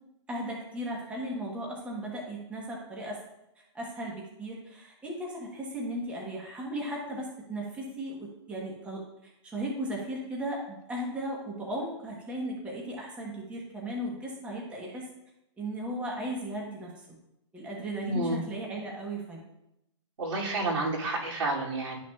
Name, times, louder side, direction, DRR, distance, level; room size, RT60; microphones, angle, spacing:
voice 1, 0.3-3.2 3.7-15.1 15.6-16.9 17.5-19.4, right 1 dB, 5° right, -2 dB, 1.0 m, -36 dB
voice 2, 18.0-18.4 20.2-22.0, right 2 dB, 80° right, -3 dB, 2.6 m, -30 dB
11.5 x 5.7 x 2.3 m, 0.85 s
hypercardioid pair, 160°, 16 cm